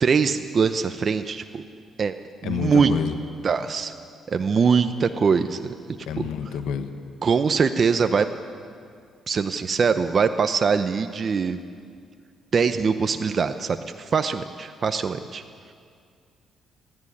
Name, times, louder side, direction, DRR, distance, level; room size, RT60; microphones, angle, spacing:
voice 1, 0.0-1.6 2.0-2.2 2.4-3.0 3.4-3.9 4.3-5.7 6.2-6.3 7.2-8.3 9.3-11.6 12.5-15.4, right 5 dB, 45° right, 8 dB, 0.8 m, -22 dB
voice 2, 2.4-3.2 6.1-6.9, left 8 dB, 90° left, 7 dB, 1.3 m, -28 dB
29.0 x 11.0 x 9.9 m, 2.3 s
cardioid pair, 90°, 0 cm